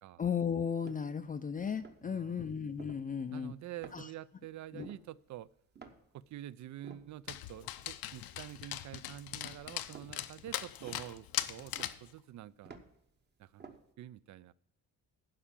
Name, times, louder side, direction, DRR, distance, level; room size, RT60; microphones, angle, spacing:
voice 1, 0.2-3.5 3.9-4.1 4.7-4.9, left 7 dB, 25° left, 10 dB, 0.4 m, -35 dB
sound 1, 0.8-1.4 1.7-2.2 2.6-3.5 3.8-4.3 4.6-6.4 6.7-9.3 9.8-13.1 13.4-13.9, right 5 dB, 30° right, 1.0 m, -54 dB
voice 2, 2.0-2.5 3.3-5.5 6.1-12.8 13.4-14.5, right 13 dB, 55° right, 20 dB, 0.4 m, -47 dB
Dog, 7.3-12.1, left 13 dB, 85° left, 0.7 m, -40 dB
11.5 x 5.1 x 7.2 m, 0.77 s
cardioid pair, 150°, 35 cm